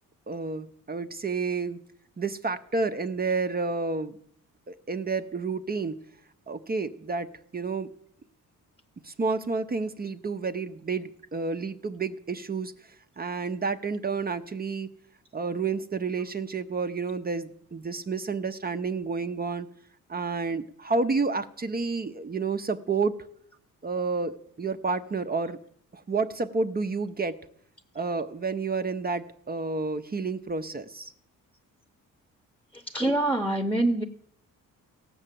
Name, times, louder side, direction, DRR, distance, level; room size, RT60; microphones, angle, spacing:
voice 1, 0.3-1.8 2.2-4.2 4.7-6.0 6.5-7.9 9.0-12.7 13.2-14.9 15.3-19.7 20.1-23.3 23.8-25.6 25.9-27.4 27.9-31.1, right 4 dB, 30° right, 8 dB, 0.7 m, -30 dB
voice 2, 32.9-34.0, right 1 dB, 5° left, 6 dB, 1.0 m, -24 dB
17.0 x 6.6 x 7.6 m, 0.68 s
cardioid pair, 95°, 33 cm